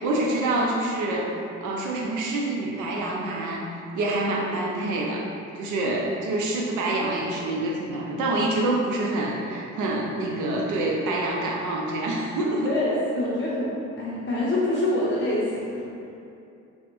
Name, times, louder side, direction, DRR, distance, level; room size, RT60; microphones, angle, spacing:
voice 1, 0.0-1.3 1.6-3.7 3.9-5.2 5.5-12.8, right 2 dB, 80° right, -2 dB, 0.5 m, -26 dB
voice 2, 12.6-13.7 14.0-15.8, left 1 dB, 40° left, -7 dB, 0.5 m, -26 dB
3.3 x 2.0 x 3.0 m, 2.6 s
cardioid pair, 90°, 30 cm